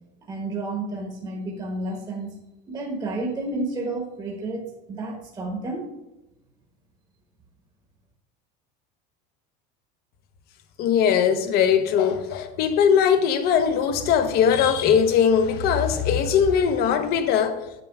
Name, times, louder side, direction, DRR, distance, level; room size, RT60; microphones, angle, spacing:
voice 1, 0.3-2.3 2.7-5.9, right 2 dB, 20° right, 1.1 m, -31 dB
voice 2, 10.8-17.6, left 7 dB, 50° left, 0.9 m, -20 dB
7.4 x 7.0 x 3.5 m
cardioid pair, 145°, 20 cm